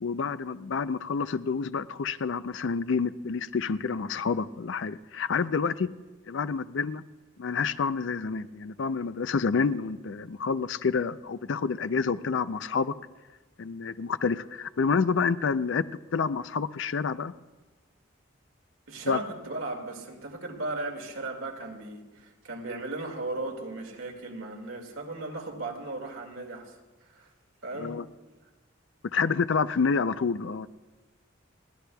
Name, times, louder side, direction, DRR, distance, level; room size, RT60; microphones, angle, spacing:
voice 1, 0.0-5.9 6.3-7.0 7.4-12.9 13.6-15.8 16.1-17.3 19.0-19.2 27.8-28.1 29.0-30.7, left 5 dB, 65° left, 14 dB, 0.4 m, -28 dB
voice 2, 18.9-26.8 27.1-27.3 27.6-28.0, right 2 dB, 80° right, 2 dB, 2.1 m, -36 dB
30.0 x 11.5 x 2.3 m, 1.2 s
head